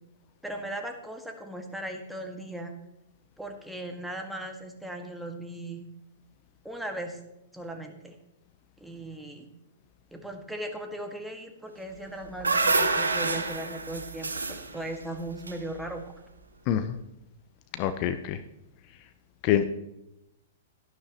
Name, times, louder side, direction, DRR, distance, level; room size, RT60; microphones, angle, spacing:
voice 1, 0.4-2.7 3.4-5.9 6.6-7.2 7.5-8.2 8.8-9.5 10.1-16.0, right 1 dB, 5° right, 3 dB, 1.7 m, -38 dB
sound 1, 12.0-16.2, right 3 dB, 85° right, 1.1 m, -28 dB
voice 2, 17.7-18.4 19.4-19.7, left 10 dB, 40° left, 10 dB, 0.7 m, -26 dB
12.5 x 11.5 x 3.0 m, 0.89 s
figure-of-eight pair, 110°, 0 cm